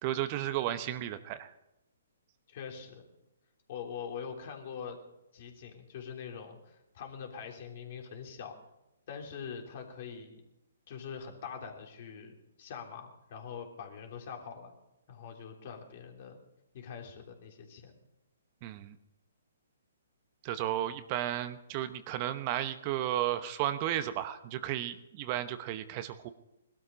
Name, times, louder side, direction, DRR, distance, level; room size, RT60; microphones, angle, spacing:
voice 1, 0.0-1.5 18.6-19.0 20.4-26.3, right 12 dB, 35° right, 11 dB, 1.0 m, -33 dB
voice 2, 2.5-3.1 3.7-5.0 5.3-8.5 9.1-10.4 10.9-12.3 12.6-14.7 15.1-16.4 16.7-18.0, left 7 dB, 50° left, 2 dB, 3.3 m, -43 dB
20.0 x 12.5 x 5.2 m, 0.91 s
hypercardioid pair, 135°, 0 cm